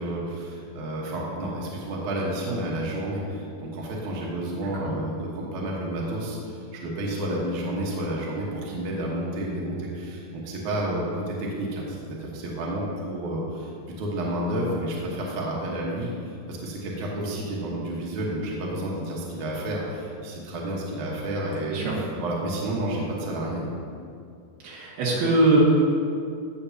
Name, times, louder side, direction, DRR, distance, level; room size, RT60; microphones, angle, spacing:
voice 1, 0.0-13.7 14.0-23.7, right 1 dB, 65° right, -4 dB, 2.6 m, -30 dB
voice 2, 24.6-25.6, right 2 dB, 85° right, -5 dB, 3.6 m, -21 dB
16.5 x 6.9 x 2.8 m, 2.4 s
omnidirectional pair, 4.1 m